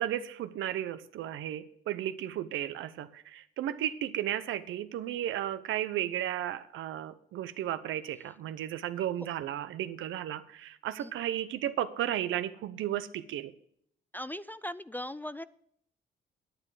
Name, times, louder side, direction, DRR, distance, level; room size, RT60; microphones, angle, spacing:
voice 1, 0.0-13.5, right 11 dB, 80° right, 12 dB, 0.8 m, -34 dB
voice 2, 14.1-15.4, left 1 dB, 10° left, 17 dB, 0.3 m, -39 dB
9.8 x 9.6 x 4.8 m, 0.67 s
cardioid pair, 90°, 20 cm